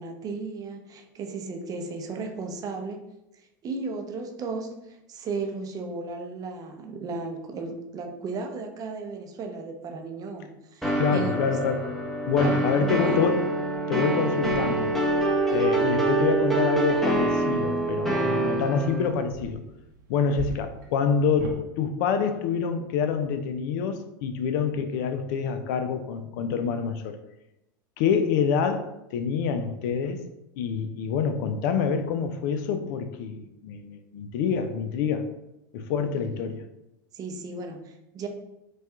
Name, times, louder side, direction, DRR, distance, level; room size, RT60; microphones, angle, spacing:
voice 1, 0.0-3.0 3.6-11.4 12.4-13.2 36.1-36.4 37.1-38.3, right 3 dB, 35° right, 4 dB, 0.5 m, -35 dB
sound 1, 10.8-19.1, right 2 dB, ahead, 0.7 m, -25 dB
voice 2, 10.9-11.8 12.3-13.5 13.9-14.9 15.5-19.6 20.1-27.2 28.0-30.2 30.6-35.3 35.7-36.6, left 6 dB, 65° left, 9 dB, 0.4 m, -26 dB
sound 2, 14.4-21.6, right 3 dB, 75° right, 0.7 m, -42 dB
4.1 x 2.3 x 2.3 m, 0.89 s
hypercardioid pair, 100°, 11 cm